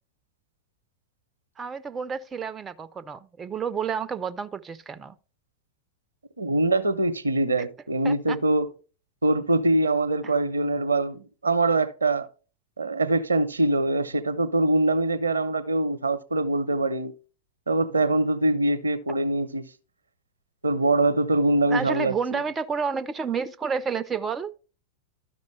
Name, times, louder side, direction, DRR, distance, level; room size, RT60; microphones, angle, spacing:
voice 1, 1.6-5.1 8.0-8.4 10.2-10.3 21.7-24.5, right 6 dB, 20° right, 0.4 m, -30 dB
voice 2, 6.4-8.7 9.2-12.3 12.8-17.1 17.7-19.6 20.6-22.4, right 2 dB, 80° right, 0.6 m, -23 dB
12.5 x 5.3 x 3.1 m
figure-of-eight pair, 90°, 0 cm